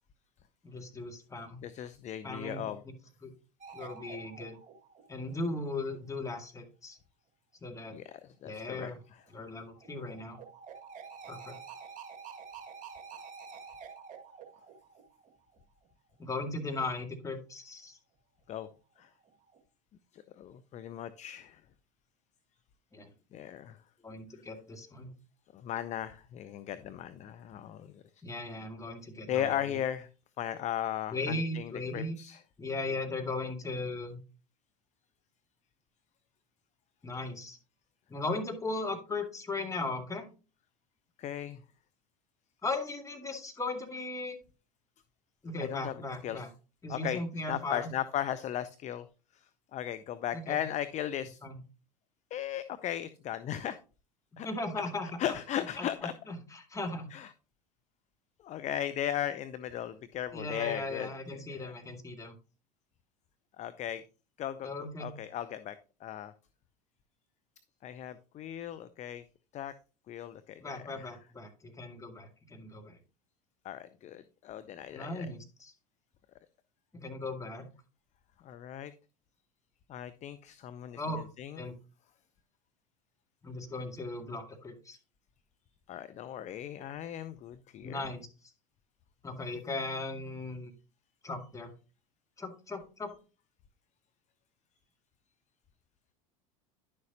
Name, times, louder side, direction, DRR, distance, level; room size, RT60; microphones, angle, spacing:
voice 1, 0.6-1.6 2.2-2.9 3.2-3.3 3.7-4.6 5.1-7.0 7.6-8.0 8.4-9.0 9.3-10.4 11.3-11.6 16.2-18.0 22.9-23.1 24.0-25.1 28.2-29.7 31.1-32.2 32.6-34.2 37.0-37.6 38.1-40.3 42.6-44.4 45.4-46.5 46.8-47.9 50.3-50.6 51.4-51.6 54.4-55.2 55.8-57.1 60.3-62.3 64.6-65.1 70.6-73.0 74.9-75.7 76.9-77.7 81.0-81.2 81.6-81.7 83.4-85.0 87.8-88.3 89.2-90.7 91.2-91.7 92.4-93.1, left 2 dB, 15° left, 3 dB, 2.1 m, -37 dB
voice 2, 1.6-2.8 7.9-9.2 18.5-18.7 19.0-19.1 20.1-21.6 23.3-23.8 25.5-28.0 29.3-30.1 30.4-32.4 41.2-41.6 45.6-46.4 46.9-49.1 49.3-51.4 52.3-53.8 54.4-54.5 55.2-56.1 57.1-57.3 58.4-61.7 63.6-64.0 64.4-65.8 66.0-66.3 67.8-69.2 69.5-69.7 70.1-71.1 73.6-75.3 78.4-78.9 79.9-81.6 85.9-88.1, left 11 dB, 35° left, 13 dB, 0.6 m, -37 dB
sound 1, 3.6-5.6 9.2-15.6 19.1-19.6, right 6 dB, 40° right, 1.8 m, -49 dB
10.5 x 6.6 x 2.8 m, 0.34 s
hypercardioid pair, 80°, 20 cm